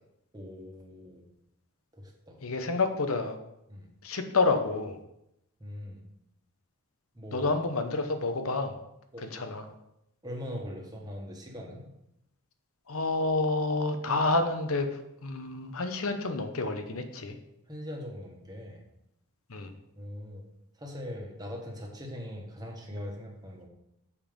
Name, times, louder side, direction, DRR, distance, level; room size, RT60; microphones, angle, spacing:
voice 1, 0.3-1.2 1.9-2.4 3.7-3.9 5.6-6.0 7.1-7.5 9.1-9.4 10.2-11.9 17.7-18.8 20.0-20.4 20.8-23.7, left 1 dB, 20° right, 0 dB, 1.5 m, -41 dB
voice 2, 2.4-3.4 4.0-5.0 7.3-8.7 9.2-9.7 12.9-17.4 19.5-19.7, left 3 dB, 70° left, 7 dB, 0.9 m, -29 dB
7.2 x 5.5 x 5.3 m, 0.83 s
head